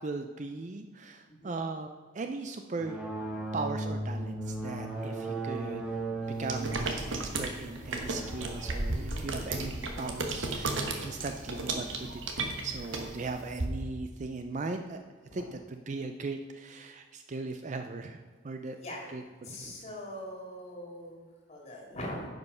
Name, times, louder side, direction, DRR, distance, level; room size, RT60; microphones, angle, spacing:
voice 1, 0.0-1.9 2.1-3.0 3.5-5.8 6.4-9.7 10.0-15.0 15.3-18.8 19.1-19.2, right 3 dB, 35° right, 6 dB, 0.4 m, -38 dB
sound 1, 2.8-10.9, right 2 dB, 5° right, 1.2 m, -38 dB
sound 2, 6.5-13.6, right 2 dB, 70° right, 1.2 m, -34 dB
voice 2, 19.4-22.3, left 1 dB, 30° left, -1 dB, 2.3 m, -42 dB
10.5 x 5.4 x 5.5 m, 1.5 s
head